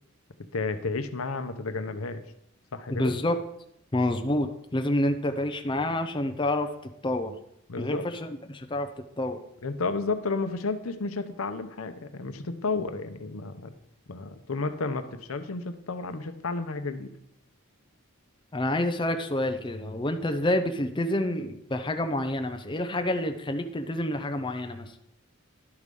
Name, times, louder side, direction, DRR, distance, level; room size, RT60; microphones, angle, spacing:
voice 1, 0.5-2.2 2.7-3.2 7.7-8.1 9.6-13.7 14.1-17.1, left 3 dB, 85° left, 9 dB, 0.8 m, -32 dB
voice 2, 2.9-3.3 3.9-6.7 7.0-7.4 7.8-8.9 9.2-9.4 18.5-24.9, left 1 dB, 25° left, 6 dB, 0.6 m, -28 dB
11.0 x 4.9 x 5.3 m, 0.77 s
head